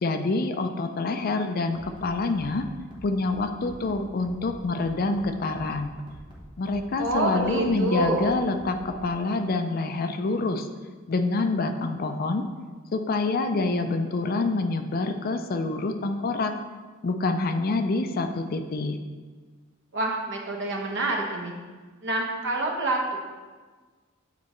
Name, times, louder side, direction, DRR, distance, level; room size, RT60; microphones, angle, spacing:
voice 1, 0.0-2.6 3.0-5.9 6.6-10.7 11.1-12.4 12.9-16.5 17.0-19.0, left 3 dB, 45° left, 7 dB, 0.4 m, -26 dB
Bass drum, 1.7-9.1, equal, 25° right, 1.1 m, -46 dB
voice 2, 7.0-8.4 19.9-21.5 22.0-23.2, right 2 dB, 60° right, 0 dB, 1.0 m, -27 dB
8.3 x 4.2 x 3.0 m, 1.4 s
head